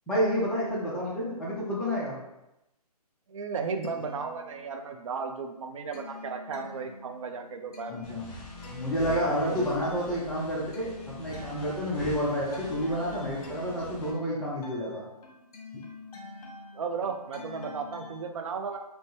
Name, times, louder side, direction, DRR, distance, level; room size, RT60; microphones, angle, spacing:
voice 1, 0.1-2.2 7.9-8.3 8.7-15.0, equal, 5° left, -8 dB, 0.5 m, -29 dB
voice 2, 3.3-8.1 9.0-9.7 16.7-18.8, right 5 dB, 55° right, 5 dB, 0.5 m, -35 dB
sound 1, 3.8-5.0 5.4-18.2, left 3 dB, 65° left, 1.0 m, -47 dB
sound 2, 8.0-14.1, equal, 25° left, 1.4 m, -44 dB
4.3 x 2.1 x 3.0 m, 0.90 s
hypercardioid pair, 150°, 20 cm